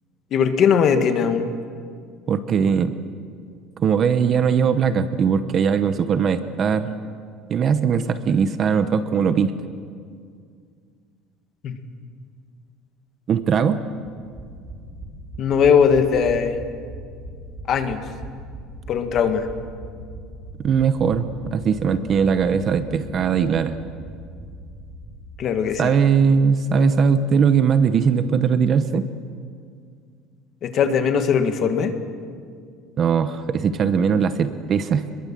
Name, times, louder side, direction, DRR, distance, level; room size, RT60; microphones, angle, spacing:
voice 1, 0.3-1.5 11.6-11.8 15.4-16.6 17.7-18.0 18.9-19.5 25.4-25.9 30.6-31.9, left 7 dB, 35° left, 7 dB, 1.8 m, -19 dB
voice 2, 2.3-2.9 3.8-7.0 7.5-9.5 13.3-13.8 20.6-23.8 25.8-29.0 33.0-35.1, right 6 dB, 30° right, 11 dB, 0.9 m, -20 dB
sound 1, 14.0-25.8 26.0-26.1 26.4-26.5, right 1 dB, 15° right, 6.8 m, -39 dB
26.5 x 22.0 x 7.6 m, 2.2 s
cardioid pair, 175°, 0 cm